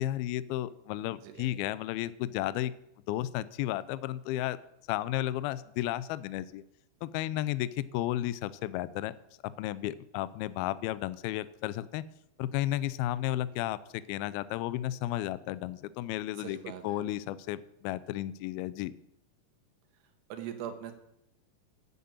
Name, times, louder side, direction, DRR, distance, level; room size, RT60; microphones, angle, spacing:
voice 1, 0.0-2.7 3.1-4.6 4.9-6.6 7.0-9.1 9.4-12.0 12.4-16.6 16.8-18.9, left 14 dB, 85° left, 16 dB, 2.2 m, -33 dB
voice 2, 1.2-1.5 16.3-17.1 20.3-20.9, right 9 dB, 80° right, 6 dB, 3.2 m, -41 dB
9.7 x 7.4 x 8.7 m, 0.79 s
omnidirectional pair, 4.8 m